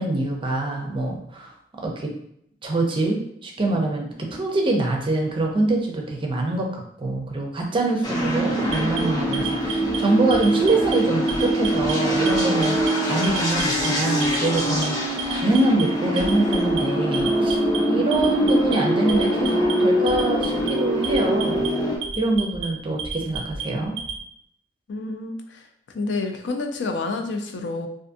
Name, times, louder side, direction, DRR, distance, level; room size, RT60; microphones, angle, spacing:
voice 1, 0.0-1.5 1.8-2.1 2.6-12.8 13.1-14.9 15.3-17.6 17.9-21.7 22.2-23.9, right 2 dB, 30° right, 1 dB, 0.5 m, -24 dB
sound 1, 8.0-22.0, equal, 20° left, 0.6 m, -23 dB
Alarm, 8.7-10.0 10.3-10.9 11.3-11.9 12.3-12.9 13.2-13.9 14.2-14.8 15.2-15.8 16.2-16.8 17.1-17.8 18.1-18.8 19.1-19.7 20.1-20.7 21.0-21.7 22.0-22.7 23.0-24.2, right 6 dB, 85° right, 0.5 m, -32 dB
voice 2, 24.9-25.7 25.9-27.9, left 3 dB, 70° left, 5 dB, 0.4 m, -29 dB
2.5 x 2.4 x 2.5 m, 0.72 s
head